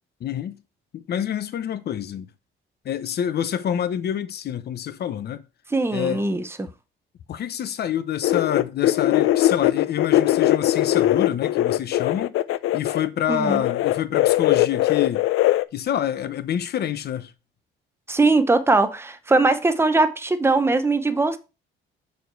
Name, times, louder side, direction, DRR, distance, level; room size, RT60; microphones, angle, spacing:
voice 1, 0.2-0.6 0.9-2.3 2.8-5.4 5.9-6.2 7.3-12.4 12.7-15.3 15.7-17.3, left 10 dB, 50° left, 0.8 m, -27 dB
voice 2, 5.7-6.7 13.3-13.6 18.1-21.4, right 3 dB, 10° right, 0.7 m, -20 dB
Fragmented Wind Sound, 8.2-13.1 13.4-15.6, left 14 dB, 90° left, 0.5 m, -20 dB
6.9 x 4.6 x 4.6 m
cardioid pair, 150°, 21 cm